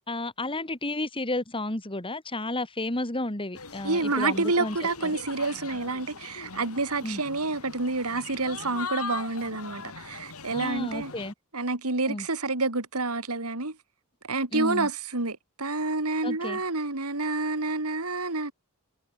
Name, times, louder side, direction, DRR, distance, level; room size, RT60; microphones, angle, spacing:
voice 1, 0.1-4.8 5.0-5.2 7.0-7.2 10.5-11.3 12.1-12.3 14.5-14.9 16.2-16.6, left 2 dB, 25° left, 3.0 m, -32 dB
sound 1, 3.5-11.3, left 5 dB, 85° left, 6.0 m, -40 dB
voice 2, 3.8-11.1 11.5-13.8 14.3-18.5, right 3 dB, 90° right, 3.2 m, -28 dB
head